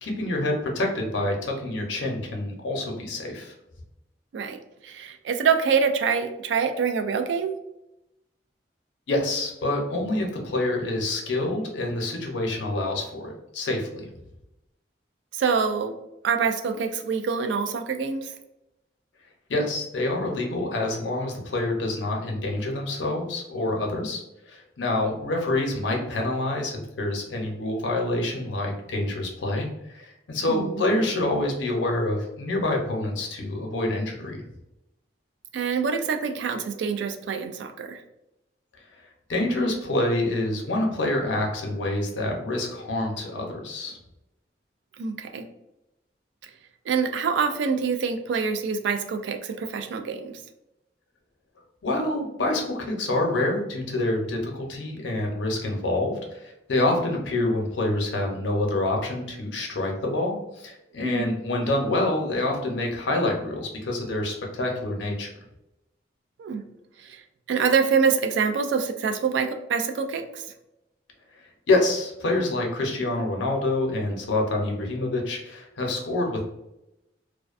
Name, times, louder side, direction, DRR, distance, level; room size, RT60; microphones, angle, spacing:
voice 1, 0.0-3.5 9.1-14.1 19.5-34.4 39.3-44.0 51.8-65.3 71.4-76.4, left 2 dB, 80° left, 1 dB, 0.6 m, -27 dB
voice 2, 4.8-7.5 15.3-16.0 16.2-18.3 30.5-30.8 35.5-38.0 45.0-45.4 46.9-50.3 61.0-61.3 66.4-66.6 67.1-67.2 67.5-70.4, right 6 dB, 75° right, 7 dB, 0.3 m, -25 dB
2.4 x 2.2 x 2.4 m, 0.89 s
head